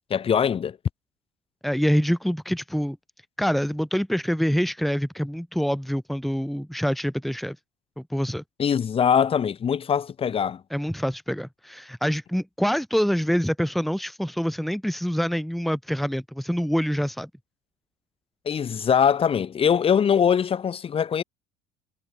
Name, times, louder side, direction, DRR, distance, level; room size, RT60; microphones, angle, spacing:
voice 1, 0.1-0.8 8.6-10.6 18.4-21.2, left 7 dB, 40° left, 6.4 m, -22 dB
voice 2, 1.6-3.0 3.4-7.6 8.0-8.4 10.7-17.3, equal, ahead, 3.3 m, -25 dB
hypercardioid pair, 65°, 15 cm